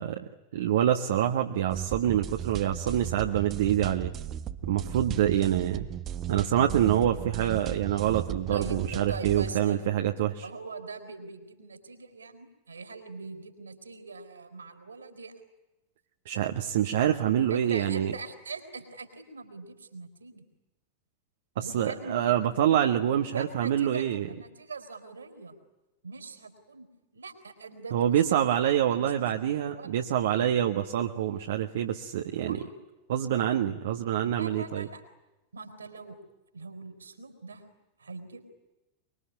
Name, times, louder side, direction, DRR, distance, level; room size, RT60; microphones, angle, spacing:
voice 1, 0.0-4.1 4.7-5.9 6.3-10.5 16.2-18.1 21.6-24.3 27.9-32.6 33.1-34.9, right 10 dB, 60° right, 5 dB, 1.5 m, -26 dB
sound 1, 1.7-9.5, right 10 dB, 30° right, 1.2 m, -36 dB
voice 2, 8.5-9.9 10.4-15.3 17.5-20.4 21.6-22.3 23.1-25.5 26.0-26.9 27.1-29.3 29.7-30.0 32.5-32.9 34.4-35.0 35.5-36.2 36.5-37.6 38.0-38.4, right 4 dB, 75° right, 8 dB, 4.6 m, -42 dB
25.0 x 24.0 x 9.9 m, 1.0 s
figure-of-eight pair, 90°, 0 cm